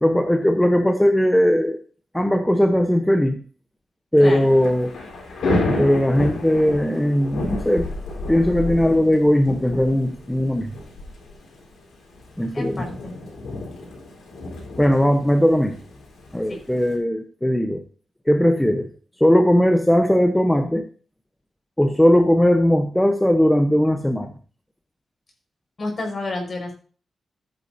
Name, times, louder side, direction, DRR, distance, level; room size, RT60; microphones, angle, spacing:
voice 1, 0.0-1.8 2.1-3.4 4.1-4.9 5.8-7.9 8.3-10.7 12.4-12.8 14.8-15.8 16.3-17.8 18.3-18.9 19.2-20.8 21.8-24.3, equal, 5° left, 5 dB, 0.9 m, -18 dB
Thunder / Rain, 4.3-17.0, left 2 dB, 85° left, 4.1 m, -31 dB
voice 2, 12.5-13.1 16.5-16.6 25.8-26.7, left 2 dB, 40° left, 1 dB, 5.5 m, -29 dB
14.5 x 9.5 x 2.8 m, 0.39 s
wide cardioid pair, 120°, 0 cm